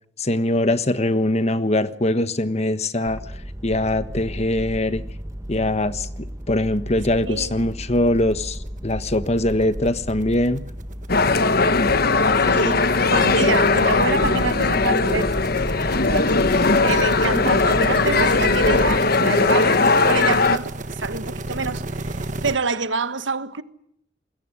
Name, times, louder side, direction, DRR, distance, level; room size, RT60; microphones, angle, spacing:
voice 1, 0.2-3.2 3.6-5.0 5.5-6.1 6.5-10.6, left 1 dB, 35° left, 1.3 m, -22 dB
sound 1, 3.1-19.0, equal, 15° right, 1.3 m, -33 dB
sound 2, 7.1-7.2 7.6-7.7 8.0-22.6, right 2 dB, 40° right, 1.5 m, -36 dB
voice 2, 7.2-7.7 12.4-15.3 16.1-23.6, right 3 dB, 85° right, 1.5 m, -27 dB
sound 3, 11.1-20.6, left 3 dB, 55° left, 1.3 m, -19 dB
26.5 x 21.5 x 9.9 m
head